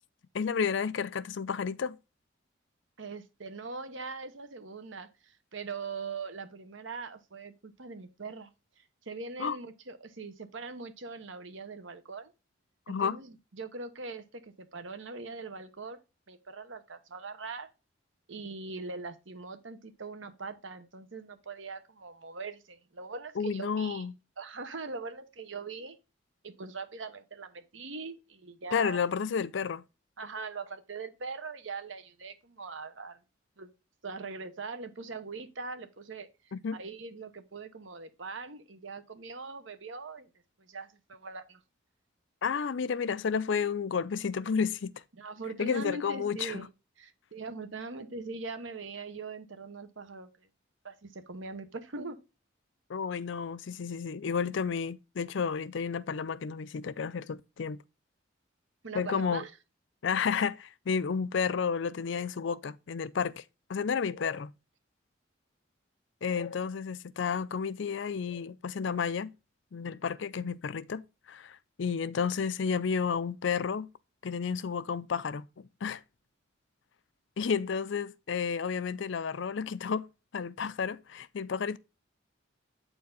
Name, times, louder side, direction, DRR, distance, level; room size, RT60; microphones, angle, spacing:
voice 1, 0.3-2.0 9.4-9.6 12.9-13.2 23.4-24.1 28.7-29.8 36.5-36.8 42.4-44.9 45.6-46.6 52.9-57.8 58.9-59.4 60.0-63.4 63.7-64.5 66.2-69.3 69.7-73.9 74.2-76.0 77.4-80.1 80.3-81.8, left 6 dB, 65° left, 0.4 m, -31 dB
voice 2, 3.0-8.5 8.8-12.3 12.9-16.0 16.3-17.7 18.3-24.0 24.4-26.0 26.4-29.0 30.2-33.2 33.6-33.7 34.0-40.3 40.6-41.6 45.2-46.7 47.0-50.5 50.8-52.2 58.8-59.5, right 4 dB, 70° right, 1.0 m, -41 dB
8.3 x 4.5 x 3.9 m
head